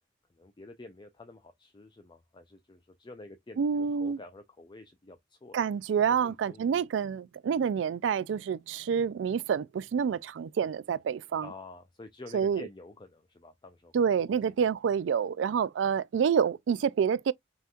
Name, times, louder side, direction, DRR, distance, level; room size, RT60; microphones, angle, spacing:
voice 1, 0.3-5.6 6.1-6.8 11.4-13.9, left 2 dB, 25° left, 0.4 m, -49 dB
voice 2, 3.6-4.2 5.5-11.5 12.3-12.6 13.9-17.3, right 7 dB, 75° right, 0.3 m, -28 dB
5.5 x 3.0 x 2.4 m
head